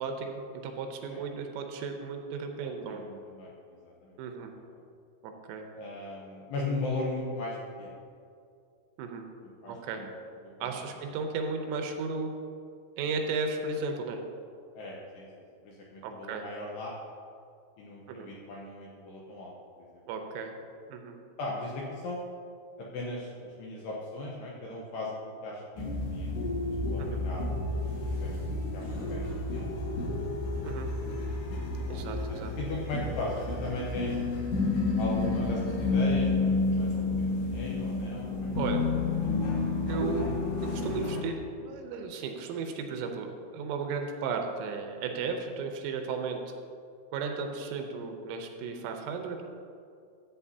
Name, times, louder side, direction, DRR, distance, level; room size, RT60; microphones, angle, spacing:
voice 1, 0.0-3.0 4.2-4.5 5.2-5.7 9.0-9.2 9.7-10.0 10.6-12.3 13.0-14.2 16.0-16.5 18.1-18.3 20.1-20.5 20.9-21.1 27.0-27.2 30.6-30.9 31.9-32.5 33.7-33.8 38.6-38.9 39.9-40.3 40.6-46.4 47.1-49.5, right 4 dB, 80° right, 4 dB, 3.2 m, -35 dB
voice 2, 2.9-3.5 3.8-4.2 5.8-8.0 9.6-10.1 10.6-10.7 14.8-15.3 15.6-16.9 17.8-20.0 21.4-22.2 22.8-26.3 26.9-29.8 31.8-34.2 35.0-36.9 37.2-38.5 39.3-39.5 40.1-40.3, left 2 dB, 80° left, -3 dB, 2.5 m, -38 dB
sound 1, 25.8-41.2, left 3 dB, 65° left, 3.2 m, -30 dB
13.5 x 8.5 x 2.8 m, 2.4 s
omnidirectional pair, 5.8 m